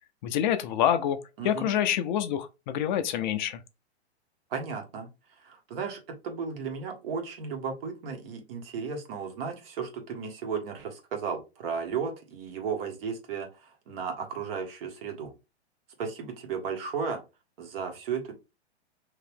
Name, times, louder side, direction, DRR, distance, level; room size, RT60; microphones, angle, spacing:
voice 1, 0.2-1.2 1.4-3.6, left 10 dB, 45° left, 0.5 m, -26 dB
voice 2, 1.4-1.7 4.5-5.1 5.4-15.3 16.0-17.2 17.6-18.3, right 6 dB, 55° right, 1.4 m, -34 dB
3.1 x 2.8 x 3.4 m
hypercardioid pair, 125°, 34 cm